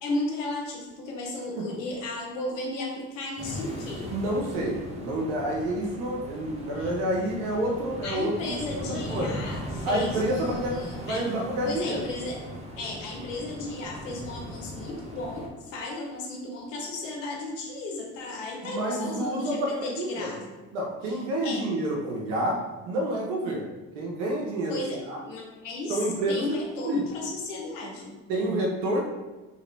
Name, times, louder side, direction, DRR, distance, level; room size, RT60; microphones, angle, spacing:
voice 1, 0.0-4.1 6.8-6.9 8.0-11.3 11.7-12.4 12.8-20.4 21.0-21.7 22.0-22.1 24.7-28.1, left 2 dB, 90° left, -1 dB, 0.8 m, -34 dB
sound 1, 3.4-15.5, equal, 20° right, 0.9 m, -38 dB
voice 2, 4.1-9.3 9.8-10.7 11.1-12.0 18.6-20.4 20.7-25.2 25.9-26.5 26.8-27.0 28.3-29.0, right 1 dB, 80° right, -1 dB, 0.8 m, -29 dB
2.9 x 2.7 x 3.2 m, 1.1 s
hypercardioid pair, 65°, 37 cm